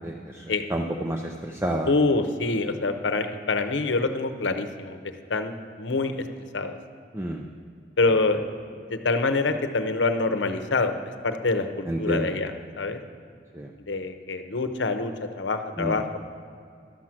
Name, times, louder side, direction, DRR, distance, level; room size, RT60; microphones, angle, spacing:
voice 1, 0.0-1.9 7.1-7.5 11.9-12.4 13.5-13.7 15.8-16.2, right 1 dB, 15° right, 2 dB, 0.5 m, -30 dB
voice 2, 1.9-5.0 5.3-6.2 6.5-6.8 8.0-8.4 8.7-11.0 11.2-13.0 13.9-16.0, left 3 dB, 85° left, 7 dB, 0.8 m, -25 dB
12.0 x 7.5 x 5.9 m, 2.4 s
head